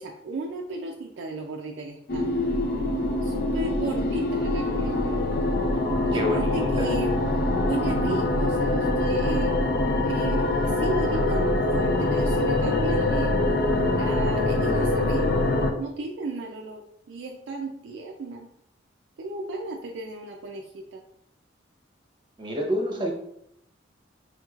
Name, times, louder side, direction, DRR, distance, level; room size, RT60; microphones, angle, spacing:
voice 1, 0.0-2.3 3.2-5.2 6.0-7.2 7.5-9.6 10.0-13.4 13.9-15.4 15.8-16.8 17.1-18.5 19.2-21.0, right 2 dB, 70° right, 0 dB, 0.4 m, -34 dB
sound 1, 2.1-15.7, left 2 dB, 50° left, 0.5 m, -24 dB
voice 2, 6.1-6.9 22.4-23.1, equal, 25° right, 0 dB, 0.8 m, -28 dB
4.9 x 3.0 x 2.4 m, 0.77 s
head